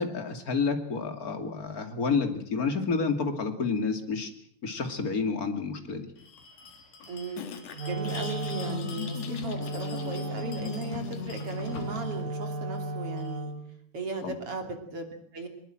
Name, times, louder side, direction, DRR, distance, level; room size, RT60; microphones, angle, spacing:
voice 1, 0.0-4.3 4.6-6.1 14.2-14.3, left 4 dB, 25° left, 6 dB, 2.4 m, -29 dB
Bell, 6.2-13.4, left 4 dB, 85° left, 5.2 m, -47 dB
voice 2, 7.1-7.5 7.9-13.5 13.9-15.5, right 3 dB, 40° right, 5 dB, 3.6 m, -37 dB
sound 1, 7.4-12.4, left 7 dB, 50° left, 2.5 m, -40 dB
Wind instrument woodwind instrument, 7.7-13.8, right 1 dB, 60° right, 4.0 m, -35 dB
23.0 x 22.0 x 7.8 m, 0.64 s
omnidirectional pair, 4.5 m